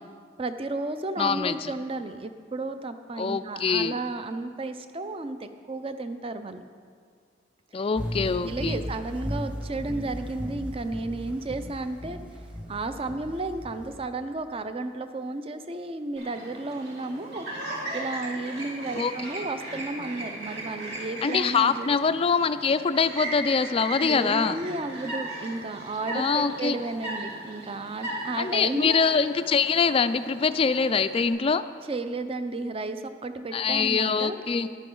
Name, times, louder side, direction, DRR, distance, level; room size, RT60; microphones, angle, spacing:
voice 1, 0.4-6.6 8.4-12.2 12.7-21.9 24.0-29.0 31.8-34.4, right 2 dB, 30° right, 9 dB, 0.5 m, -33 dB
voice 2, 1.2-1.7 3.2-4.0 7.7-8.8 19.0-19.1 21.2-24.6 26.1-26.8 28.4-31.6 33.5-34.7, left 5 dB, 30° left, 13 dB, 0.3 m, -24 dB
sound 1, 7.9-14.0, equal, 5° right, 1.1 m, -35 dB
Chirp tweet, 16.2-31.3, right 1 dB, 55° right, 3.1 m, -38 dB
13.5 x 11.0 x 3.8 m, 2.1 s
head